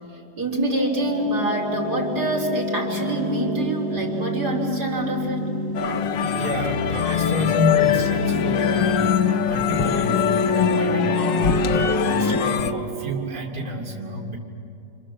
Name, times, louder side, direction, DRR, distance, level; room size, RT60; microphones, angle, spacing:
voice 1, 0.4-5.5, right 1 dB, 60° right, -1 dB, 4.5 m, -25 dB
sound 1, 0.9-13.6, left 2 dB, 15° left, 0.8 m, -27 dB
sound 2, 5.7-12.7, left 9 dB, 85° left, 1.6 m, -23 dB
voice 2, 6.2-14.4, equal, 35° right, -3 dB, 2.9 m, -30 dB
29.5 x 27.0 x 7.4 m, 2.7 s
omnidirectional pair, 1.9 m